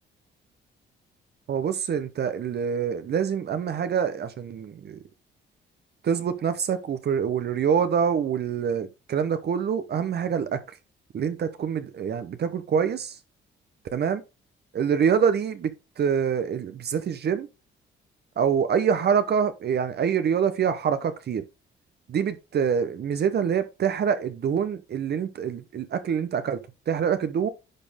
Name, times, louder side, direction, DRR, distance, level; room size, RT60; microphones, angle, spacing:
voice 1, 1.5-5.0 6.0-10.6 11.1-13.2 13.9-14.2 14.7-15.7 16.0-17.5 18.4-21.4 22.1-26.6 26.9-27.5, right 7 dB, 55° right, 1.0 m, -25 dB
10.5 x 4.3 x 3.5 m
cardioid pair, 90°, 20 cm